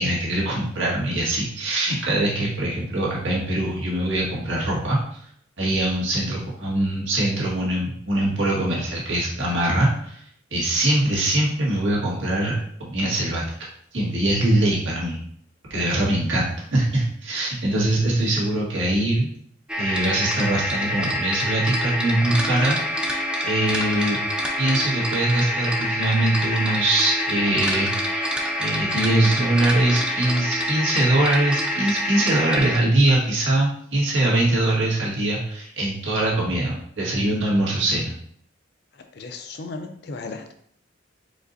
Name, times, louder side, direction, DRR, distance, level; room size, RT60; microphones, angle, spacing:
voice 1, 0.0-5.2 5.6-10.2 10.5-13.4 13.9-15.2 15.7-19.3 19.8-24.2 24.6-28.3 28.6-38.1, right 1 dB, 75° right, -4 dB, 1.8 m, -22 dB
sound 1, 19.7-32.8, equal, 5° right, 0.4 m, -26 dB
voice 2, 38.9-40.5, left 3 dB, 55° left, 6 dB, 0.5 m, -36 dB
5.0 x 4.0 x 2.6 m, 0.64 s
head